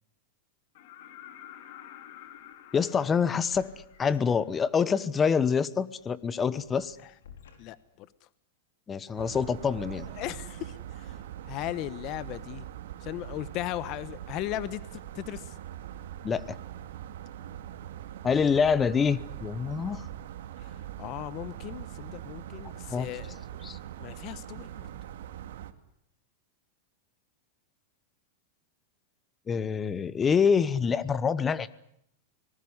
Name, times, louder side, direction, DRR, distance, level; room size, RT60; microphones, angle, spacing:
sound 1, 0.7-4.5 6.4-6.5, left 11 dB, 60° left, 2.8 m, -49 dB
sound 2, 2.4-2.5 3.5-5.0 5.3-5.5 6.0-8.1, left 7 dB, 90° left, 4.7 m, -55 dB
voice 1, 2.7-3.7 4.0-7.0 8.9-10.1 16.2-16.6 18.2-20.1 22.9-23.1 23.6-23.8 29.5-31.7, left 6 dB, 15° left, 18 dB, 1.0 m, -26 dB
voice 2, 7.6-8.1 10.2-11.1 11.4-12.7 13.0-14.8 15.1-15.5 20.6-20.7 21.0-23.4 24.0-24.9, left 15 dB, 40° left, 17 dB, 1.0 m, -37 dB
sound 3, 9.2-25.7, right 11 dB, 75° right, 2.2 m, -42 dB
25.0 x 19.5 x 9.7 m, 0.74 s
supercardioid pair, 145°, 0 cm